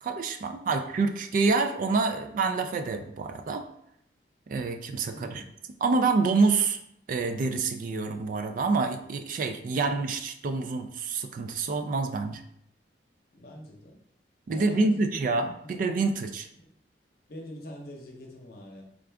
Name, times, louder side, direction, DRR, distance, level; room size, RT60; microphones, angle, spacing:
voice 1, 0.0-3.7 4.5-5.4 5.8-6.8 7.1-12.4 14.5-16.5, right 4 dB, 50° right, 7 dB, 0.3 m, -27 dB
voice 2, 0.6-0.9 5.1-5.5 13.3-14.0 14.5-15.2 15.6-15.9 16.6-16.7 17.3-18.8, equal, 60° left, 0 dB, 0.7 m, -45 dB
3.7 x 2.3 x 3.3 m, 0.74 s
head